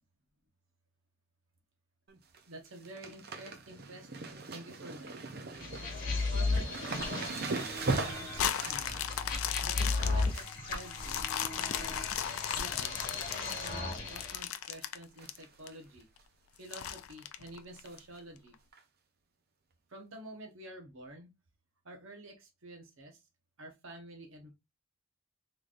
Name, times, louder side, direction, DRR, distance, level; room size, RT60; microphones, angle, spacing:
sound 1, 2.1-2.4 2.7-11.9 12.2-12.7 13.0-13.8 14.1-14.2 15.2-15.5 15.7-15.8 16.2-16.3 17.9-18.0 18.7-18.8, right 3 dB, 45° right, 0.6 m, -40 dB
voice 1, 2.5-5.1 6.1-6.8 7.9-8.3 8.6-9.1 9.6-11.9 12.6-16.0 16.6-18.5 19.9-21.3 21.8-23.1 23.6-24.5, right 1 dB, 65° right, 1.0 m, -49 dB
sound 2, 5.6-14.4, left 3 dB, 40° left, 1.2 m, -35 dB
sound 3, 8.4-15.7 16.2-16.3 16.7-18.0 18.5-18.6, left 10 dB, 70° left, 0.4 m, -36 dB
3.9 x 3.2 x 2.5 m
head